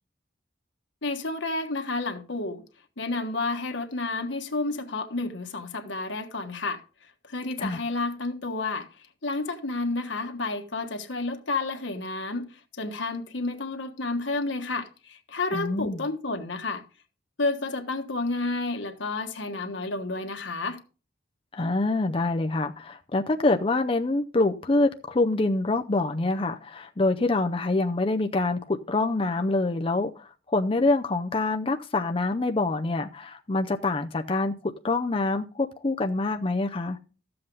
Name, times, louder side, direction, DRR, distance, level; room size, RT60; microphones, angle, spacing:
voice 1, 1.0-2.6 3.0-6.8 7.3-8.9 9.2-16.8 17.4-20.8, left 3 dB, 80° left, 1.5 m, -30 dB
voice 2, 15.5-16.0 21.5-34.5 34.8-37.0, left 2 dB, 30° left, 0.5 m, -26 dB
13.0 x 7.7 x 3.9 m
head